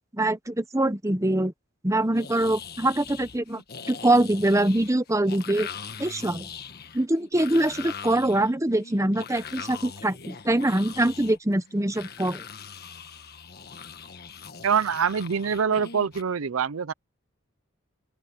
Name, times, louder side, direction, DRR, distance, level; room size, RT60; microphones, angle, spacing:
voice 1, 0.1-1.5 1.8-3.6 3.9-5.7 6.0-6.5 6.9-12.4, right 1 dB, 15° right, 1.0 m, -24 dB
sound 1, 2.1-16.2, left 6 dB, 50° left, 1.5 m, -41 dB
voice 2, 14.6-16.9, right 6 dB, 85° right, 0.6 m, -25 dB
open air
head